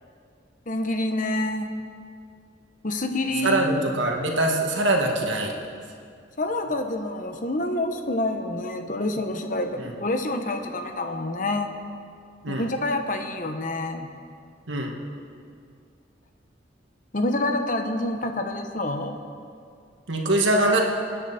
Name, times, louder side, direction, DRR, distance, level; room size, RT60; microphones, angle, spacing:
voice 1, 0.7-1.7 2.8-3.8 6.4-11.7 12.5-14.1 17.1-19.2, left 2 dB, 45° left, 6 dB, 1.1 m, -27 dB
voice 2, 3.4-5.5 9.8-9.9 12.4-12.6 14.7-14.9 20.1-20.8, right 2 dB, 80° right, 1 dB, 2.0 m, -23 dB
24.0 x 10.0 x 4.3 m, 2.3 s
head